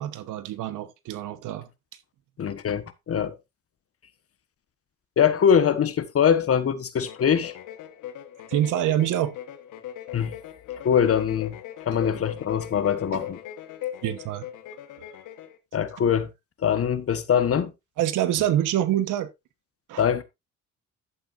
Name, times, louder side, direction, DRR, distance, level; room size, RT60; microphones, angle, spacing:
voice 1, 0.0-1.7 8.5-9.4 13.1-13.2 14.0-14.5 15.0-15.1 18.0-19.3 19.9-20.0, right 12 dB, 90° right, 1.2 m, -26 dB
voice 2, 2.4-3.3 5.2-7.5 10.1-10.3 10.8-11.6 11.8-13.4 15.7-16.3 16.6-17.7 20.0-20.2, left 8 dB, 50° left, 1.4 m, -23 dB
Minibrute Sequence, 7.0-15.6, left 11 dB, 85° left, 1.4 m, -39 dB
11.0 x 8.5 x 2.6 m
cardioid pair, 90°, 30 cm